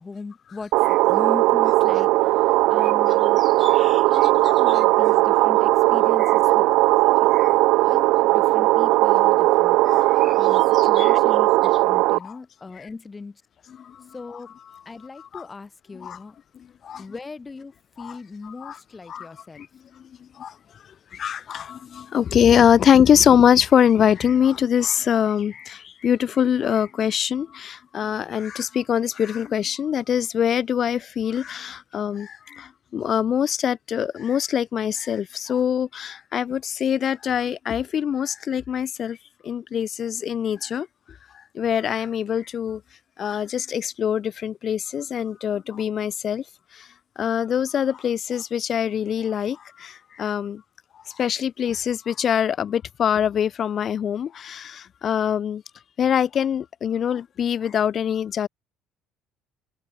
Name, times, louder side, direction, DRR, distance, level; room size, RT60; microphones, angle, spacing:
voice 1, 0.0-2.1 2.7-3.4 4.1-6.6 7.2-7.3 7.8-9.8 10.4-13.4 14.1-14.5 14.8-16.4 17.0-17.7 18.0-19.6, left 4 dB, 25° left, 4.7 m, -38 dB
sound 1, 0.7-12.2, right 20 dB, 70° right, 0.4 m, -18 dB
voice 2, 2.8-4.8 5.1-5.4 6.2-6.5 7.3-7.5 9.8-11.2 12.2-12.4 12.8-12.9 13.7-14.1 14.7-14.8 15.2-15.5 15.9-16.2 16.5-17.0 18.0-18.2 18.4-18.8 19.1-19.3 19.5-19.7 20.0-20.5 21.1-39.2 39.4-40.9 41.5-42.8 43.2-46.4 46.7-46.9 47.2-50.6 51.1-55.6 56.0-58.5, left 8 dB, 50° left, 2.7 m, -24 dB
hypercardioid pair, 60°, 0 cm